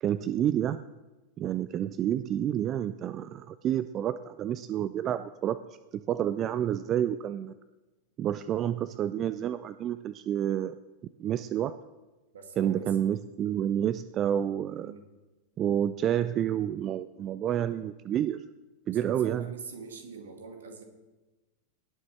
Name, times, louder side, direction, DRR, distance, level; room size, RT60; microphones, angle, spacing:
voice 1, 0.0-0.9 1.4-5.6 5.9-7.5 8.2-10.8 11.2-11.7 12.6-14.9 15.6-18.4 18.9-19.5, right 10 dB, 30° right, 14 dB, 0.4 m, -29 dB
voice 2, 12.3-13.0 14.7-15.0 19.0-20.8, right 5 dB, 65° right, 5 dB, 2.0 m, -44 dB
18.5 x 6.7 x 4.4 m, 1.1 s
figure-of-eight pair, 90°, 0 cm